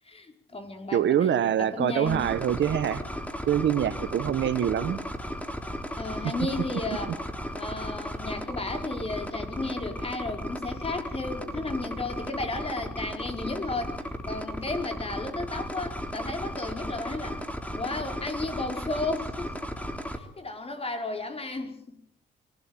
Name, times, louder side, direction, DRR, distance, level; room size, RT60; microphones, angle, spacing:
voice 1, 0.1-1.3 1.5-2.2 6.0-7.1 7.5-14.0 14.3-17.4 17.8-19.6 20.1-22.0, left 3 dB, 30° left, 5 dB, 5.0 m, -34 dB
voice 2, 0.9-3.0 3.5-5.0, right 10 dB, 65° right, 13 dB, 1.4 m, -25 dB
sound 1, 2.1-20.2, equal, 5° left, 3.5 m, -35 dB
24.0 x 17.5 x 9.1 m, 0.68 s
cardioid pair, 90°, 20 cm